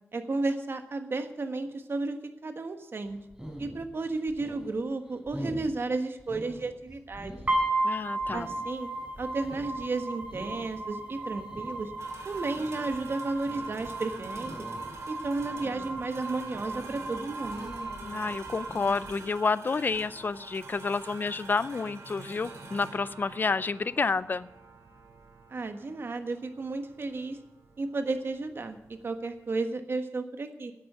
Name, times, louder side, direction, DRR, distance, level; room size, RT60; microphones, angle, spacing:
voice 1, 0.1-3.2 3.6-7.3 8.3-8.9 9.2-11.9 12.2-14.7 15.1-17.7 25.5-27.4 27.8-30.7, right 3 dB, 50° right, 7 dB, 1.4 m, -33 dB
sound 1, 3.0-19.3, equal, 10° right, 4.1 m, -45 dB
sound 2, 7.5-19.5, right 2 dB, 35° right, 3.4 m, -35 dB
voice 2, 7.8-8.5 18.0-24.5, left 4 dB, 40° left, 17 dB, 0.5 m, -29 dB
sound 3, 12.0-29.6, right 3 dB, 80° right, 2.5 m, -48 dB
11.0 x 8.8 x 8.1 m, 0.88 s
wide cardioid pair, 90°, 5 cm